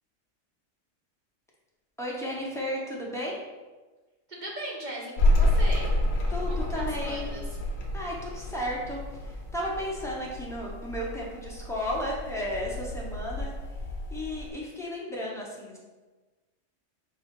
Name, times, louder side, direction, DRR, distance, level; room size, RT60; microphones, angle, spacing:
voice 1, 2.0-3.4 6.3-7.3 7.9-13.5 14.1-15.8, equal, 5° left, -4 dB, 0.6 m, -34 dB
voice 2, 4.3-5.9 6.5-7.5, right 1 dB, 40° right, -3 dB, 1.0 m, -38 dB
sound 1, 5.2-14.5, left 1 dB, 60° left, 0.9 m, -29 dB
4.2 x 2.8 x 4.5 m, 1.3 s
omnidirectional pair, 1.3 m